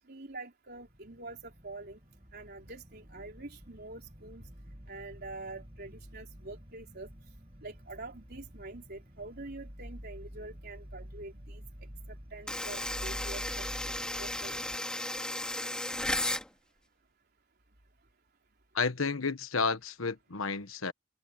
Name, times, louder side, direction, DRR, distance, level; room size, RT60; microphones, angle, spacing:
voice 1, 0.0-2.0 2.3-4.5 4.9-7.1 7.6-11.6 12.3-14.6, right 2 dB, 50° right, 3.8 m, -45 dB
sound 1, 0.7-14.8, equal, 30° right, 5.0 m, -48 dB
sound 2, 12.5-16.5, left 1 dB, 5° left, 2.6 m, -34 dB
voice 2, 18.7-20.9, left 5 dB, 85° left, 1.3 m, -31 dB
head